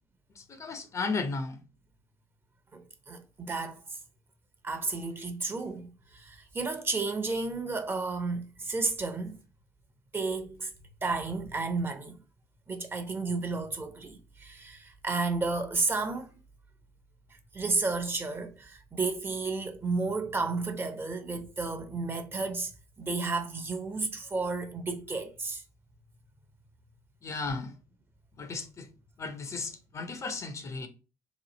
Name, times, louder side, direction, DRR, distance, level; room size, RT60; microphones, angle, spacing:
voice 1, 0.3-1.6 27.2-27.7 28.4-28.9 29.2-30.9, left 4 dB, 35° left, 0.8 m, -35 dB
voice 2, 2.7-4.0 4.6-9.4 10.1-10.7 11.0-12.2 12.7-16.3 17.5-22.7 23.0-25.6, right 3 dB, 25° right, 0.9 m, -32 dB
3.1 x 2.6 x 4.0 m
hypercardioid pair, 55°, 8 cm